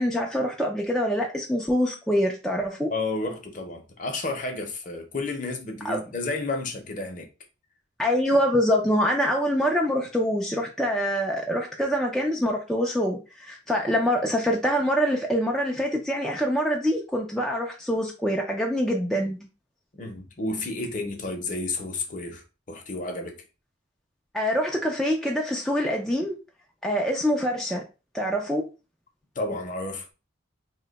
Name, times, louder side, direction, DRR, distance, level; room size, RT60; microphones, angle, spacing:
voice 1, 0.0-2.9 5.8-6.0 8.0-19.5 24.3-26.4 26.8-27.8 28.1-28.6, equal, ahead, 0.3 m, -25 dB
voice 2, 2.9-7.3 19.9-23.4 29.4-30.1, left 2 dB, 40° left, 0.6 m, -31 dB
2.7 x 2.2 x 3.8 m
head